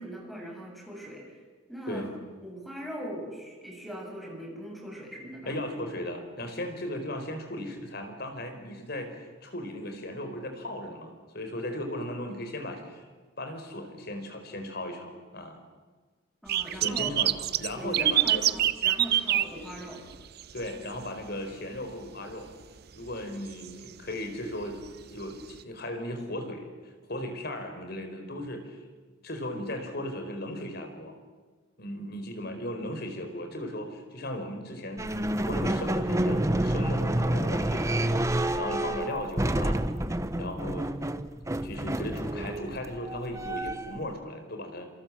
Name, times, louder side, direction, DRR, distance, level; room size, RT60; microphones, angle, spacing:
voice 1, 0.0-1.4 1.7-2.0 2.4-5.6 16.4-17.1 17.7-20.0, equal, ahead, -1 dB, 7.2 m, -40 dB
voice 2, 5.5-13.0 13.4-15.6 16.7-17.3 17.6-18.4 20.5-22.5 22.9-24.8 25.1-28.8 29.2-31.1 31.8-35.1 35.4-39.8 40.3-41.1 41.6-44.9, left 1 dB, 55° left, 6 dB, 4.9 m, -36 dB
sound 1, 16.5-20.7 21.0-21.3 21.8-21.9 23.1-23.2 23.6-23.7 24.9-25.0 25.6-25.7, right 12 dB, 50° right, 0.8 m, -25 dB
sound 2, 35.0-44.1, right 1 dB, 15° right, 1.0 m, -29 dB
28.0 x 27.5 x 7.6 m, 1.4 s
head